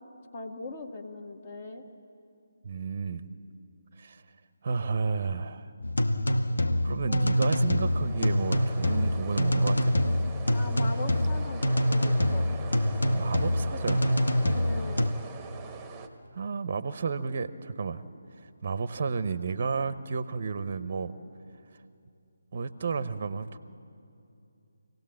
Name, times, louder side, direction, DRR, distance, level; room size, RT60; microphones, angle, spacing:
voice 1, 0.3-1.8 7.1-7.3 10.5-12.5 14.5-15.1, left 3 dB, 30° left, 5 dB, 1.7 m, -40 dB
voice 2, 2.6-3.3 4.0-4.2 4.6-5.7 6.8-10.0 13.1-14.1 16.3-18.0 18.6-21.1 22.5-23.6, right 5 dB, 35° right, 14 dB, 0.8 m, -32 dB
sound 1, 5.8-15.1, left 1 dB, 65° left, 1.2 m, -26 dB
sound 2, 7.4-16.1, right 5 dB, 10° right, 1.1 m, -44 dB
26.5 x 17.5 x 7.5 m, 2.6 s
figure-of-eight pair, 150°, 0 cm